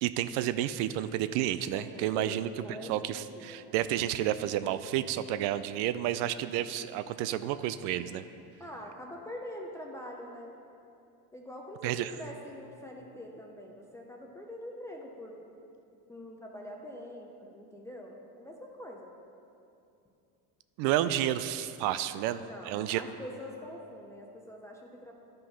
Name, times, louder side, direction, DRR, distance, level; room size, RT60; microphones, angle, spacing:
voice 1, 0.0-2.5 2.9-8.2 11.8-12.1 20.8-22.4 22.6-23.0, right 12 dB, 80° right, 13 dB, 0.5 m, -30 dB
voice 2, 1.7-3.7 8.6-10.5 11.3-15.4 16.1-19.1 22.3-25.1, left 1 dB, 5° left, -1 dB, 0.6 m, -44 dB
11.5 x 5.4 x 5.7 m, 2.7 s
cardioid pair, 135°, 39 cm